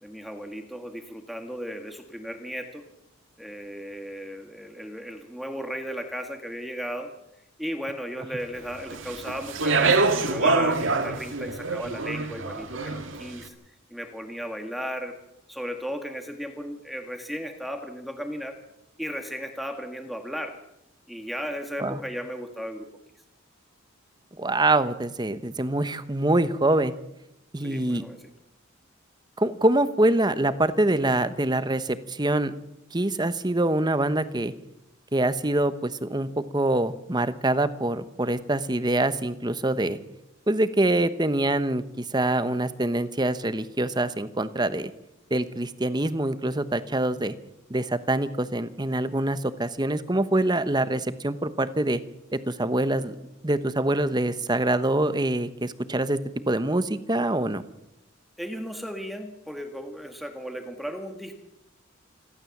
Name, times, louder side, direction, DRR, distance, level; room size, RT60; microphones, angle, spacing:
voice 1, 0.0-2.8 3.4-7.1 7.6-13.5 13.9-15.1 15.5-18.6 19.0-20.5 21.1-22.9 27.6-28.3 58.4-61.4, equal, ahead, 5 dB, 1.7 m, -35 dB
Speech, 8.9-13.2, right 3 dB, 70° right, 2.0 m, -25 dB
voice 2, 24.4-26.9 27.5-28.0 29.4-32.5 32.9-34.5 35.1-36.3 36.5-40.0 40.5-44.9 45.3-47.3 47.7-52.0 52.5-53.2 53.4-56.2 56.5-57.6, right 1 dB, 20° right, 12 dB, 1.0 m, -25 dB
28.0 x 12.5 x 7.3 m, 0.85 s
head